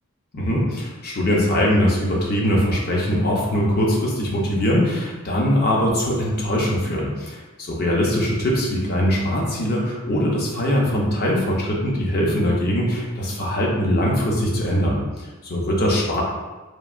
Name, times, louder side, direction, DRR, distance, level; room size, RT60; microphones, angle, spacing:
voice 1, 0.3-16.2, equal, 45° left, -2 dB, 0.6 m, -21 dB
3.2 x 2.5 x 2.4 m, 1.2 s
head